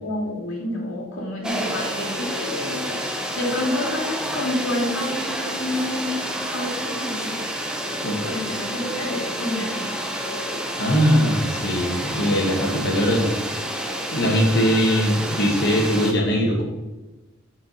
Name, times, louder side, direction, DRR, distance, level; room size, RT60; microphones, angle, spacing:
voice 1, 0.0-3.0 3.3-6.2 6.5-7.5 8.2-9.9, left 1 dB, 85° left, -2 dB, 2.8 m, -28 dB
sound 1, 1.4-16.1, equal, 5° right, 1.0 m, -29 dB
voice 2, 8.0-8.3 10.8-13.3 14.1-16.6, equal, 55° left, -1 dB, 2.2 m, -21 dB
9.8 x 5.5 x 6.0 m, 1.1 s
head